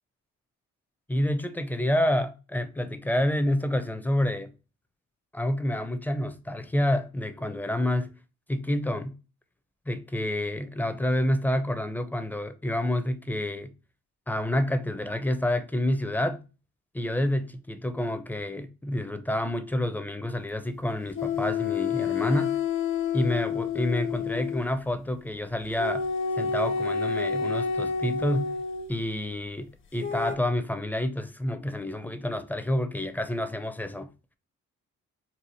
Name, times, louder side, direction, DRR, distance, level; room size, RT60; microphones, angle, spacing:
voice 1, 1.1-4.5 5.3-8.1 8.5-9.1 9.9-13.7 14.3-16.4 16.9-22.6 23.1-26.0 26.4-28.6 28.9-34.1, left 1 dB, 5° left, 0.5 m, -28 dB
sound 1, 21.2-24.7 25.8-28.9 30.0-30.4, left 6 dB, 40° left, 0.7 m, -29 dB
4.2 x 2.5 x 2.8 m
cardioid pair, 90°, 30 cm